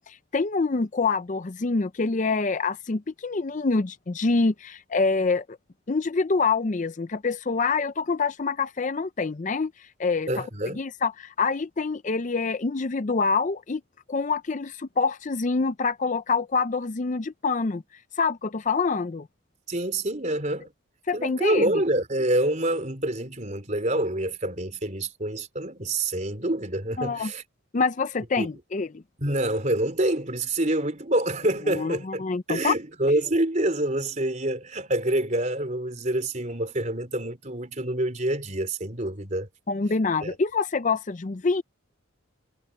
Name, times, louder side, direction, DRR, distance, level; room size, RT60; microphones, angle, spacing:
voice 1, 0.0-5.6 5.9-10.4 10.7-13.8 14.1-17.8 18.2-19.3 21.1-21.7 27.0-27.3 27.7-29.0 31.7-32.7 39.7-41.6, left 4 dB, 35° left, 0.5 m, -26 dB
voice 2, 10.3-10.8 19.7-20.7 21.1-27.4 28.4-28.5 29.2-32.2 32.5-39.5 40.2-40.3, right 1 dB, 35° right, 3.8 m, -26 dB
head